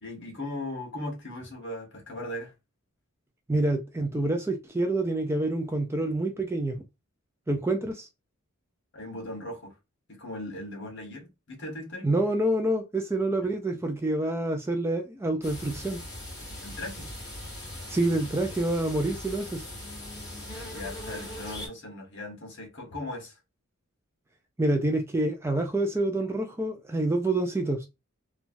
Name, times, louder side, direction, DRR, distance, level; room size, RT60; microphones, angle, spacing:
voice 1, 0.0-2.5 8.9-9.7 10.1-12.1 16.6-17.1 20.7-23.4, left 1 dB, 55° left, 1.2 m, -38 dB
voice 2, 3.5-6.8 7.5-8.1 12.0-16.0 17.9-19.7 24.6-27.9, right 2 dB, 10° right, 0.3 m, -27 dB
sound 1, 15.4-21.7, left 1 dB, 20° left, 1.5 m, -40 dB
3.1 x 2.2 x 2.6 m
head